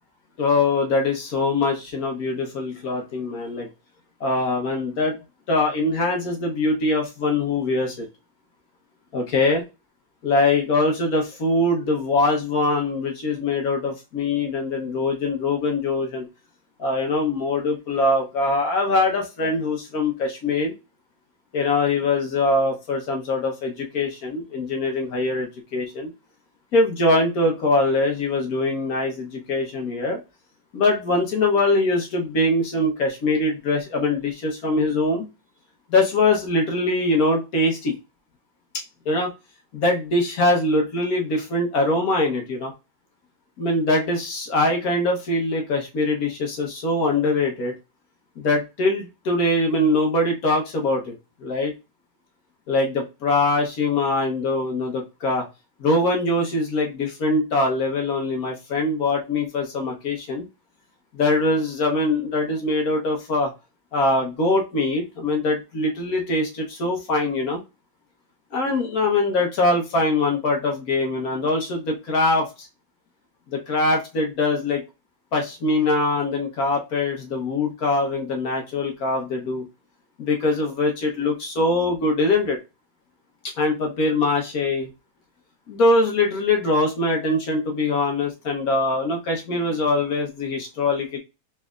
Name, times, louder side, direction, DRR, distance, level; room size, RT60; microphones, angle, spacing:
voice 1, 0.4-3.7 4.2-5.2 5.5-8.1 9.1-9.6 10.2-16.3 16.8-20.7 21.5-26.1 26.7-30.2 30.7-35.2 35.9-37.9 39.0-39.3 39.7-42.7 43.6-47.7 48.4-51.1 51.4-51.7 52.7-55.4 55.8-60.4 61.1-63.5 63.9-67.6 68.5-72.7 73.5-74.8 75.3-79.6 80.2-82.6 83.6-84.9 85.7-91.2, left 2 dB, 65° left, 1 dB, 1.5 m, -22 dB
4.2 x 3.3 x 2.4 m, 0.26 s
omnidirectional pair, 1.7 m